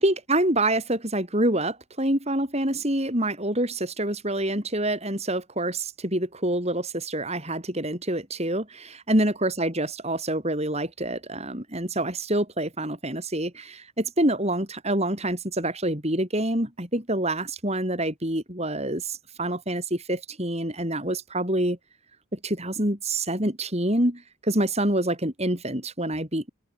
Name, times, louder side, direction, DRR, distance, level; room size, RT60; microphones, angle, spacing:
voice 1, 0.0-21.8 22.3-26.5, right 1 dB, 30° right, 6.5 m, -26 dB
head